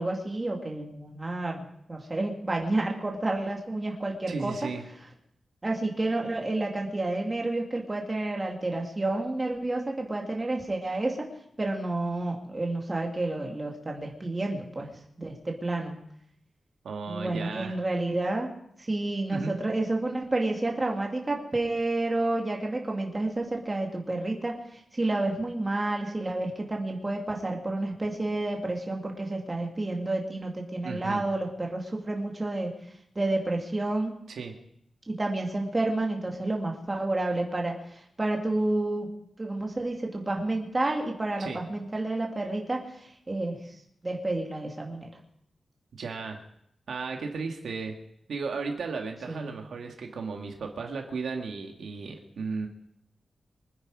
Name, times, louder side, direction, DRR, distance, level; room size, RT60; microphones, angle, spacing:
voice 1, 0.0-4.5 5.6-11.3 11.6-14.9 15.2-16.0 17.1-18.5 18.8-32.7 33.2-34.1 35.1-39.1 39.4-42.9 43.3-43.6 44.0-45.1 49.3-49.6, right 2 dB, 20° right, 0 dB, 2.4 m, -30 dB
voice 2, 4.3-4.9 16.8-17.8 19.3-19.5 30.8-31.2 34.3-34.5 41.4-41.6 46.0-46.4 46.9-48.0 48.3-52.7, right 4 dB, 85° right, 3 dB, 1.9 m, -35 dB
24.5 x 10.0 x 4.9 m, 0.71 s
wide cardioid pair, 165°, 0 cm